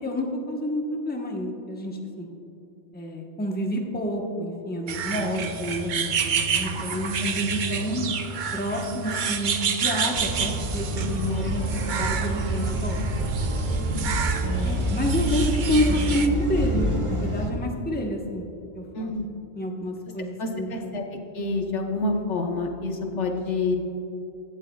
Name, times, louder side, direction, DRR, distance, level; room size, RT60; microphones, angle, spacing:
voice 1, 0.0-2.3 2.9-8.1 8.5-11.6 11.9-13.0 14.4-18.4 18.7-19.3 19.5-20.9, equal, 10° left, 1 dB, 1.0 m, -29 dB
sound 1, 4.9-16.3, right 6 dB, 50° right, 0.7 m, -29 dB
sound 2, 10.1-17.5, equal, 30° right, 1.1 m, -27 dB
voice 2, 13.7-14.1 14.6-14.8 18.9-19.3 20.4-21.0 21.3-23.8, left 3 dB, 80° left, 3 dB, 1.4 m, -28 dB
16.0 x 12.0 x 2.3 m, 2.8 s
omnidirectional pair, 1.2 m